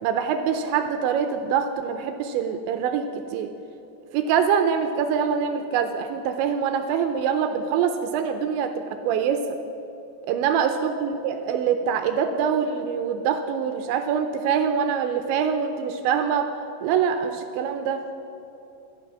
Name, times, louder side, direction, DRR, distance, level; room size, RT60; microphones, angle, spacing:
voice 1, 0.0-3.5 4.1-9.4 10.3-16.5 16.8-18.0, right 7 dB, 85° right, 6 dB, 2.7 m, -24 dB
14.0 x 11.5 x 6.0 m, 3.0 s
omnidirectional pair, 5.8 m